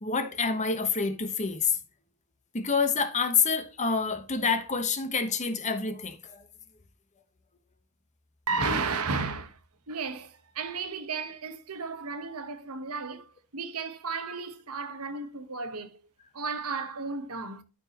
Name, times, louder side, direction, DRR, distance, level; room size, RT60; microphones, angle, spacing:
voice 1, 0.0-1.7 2.5-6.4, left 5 dB, 35° left, 1.1 m, -27 dB
voice 2, 8.5-9.6 9.9-16.0 16.3-17.6, right 4 dB, 80° right, 1.2 m, -33 dB
12.5 x 4.8 x 2.9 m
head